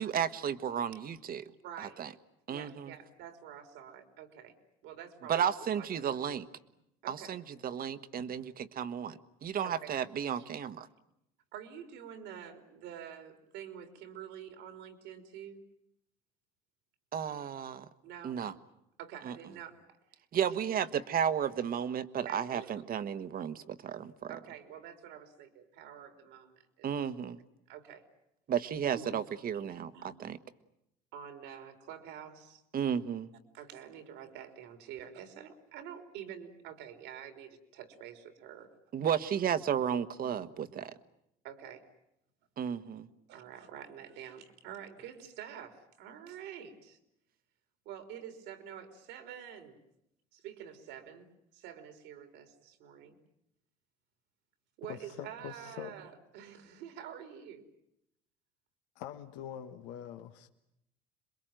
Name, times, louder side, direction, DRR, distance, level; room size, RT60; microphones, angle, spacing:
voice 1, 0.0-1.4 1.8-2.1 2.5-2.9 5.3-6.5 7.1-10.9 17.1-17.9 18.2-18.5 19.2-19.4 20.3-24.3 26.8-27.4 28.5-30.4 32.7-33.3 38.9-40.9 42.6-43.1, right 8 dB, 50° right, 1.5 m, -33 dB
voice 2, 1.6-2.1 2.5-4.5 4.8-5.5 5.7-6.2 7.0-7.7 8.2-8.3 9.6-10.0 10.3-10.5 11.5-15.6 18.0-18.4 19.0-20.2 20.5-20.9 22.3-22.7 24.3-27.1 27.7-28.0 28.9-30.2 31.1-32.6 33.5-38.8 40.2-41.0 41.4-41.9 43.3-47.0 47.9-49.8 50.3-53.2 54.8-57.7, right 9 dB, 80° right, 3.8 m, -48 dB
voice 3, 54.9-55.9 58.9-60.5, left 10 dB, 80° left, 1.4 m, -44 dB
27.5 x 22.5 x 9.1 m
supercardioid pair, 75°, 19 cm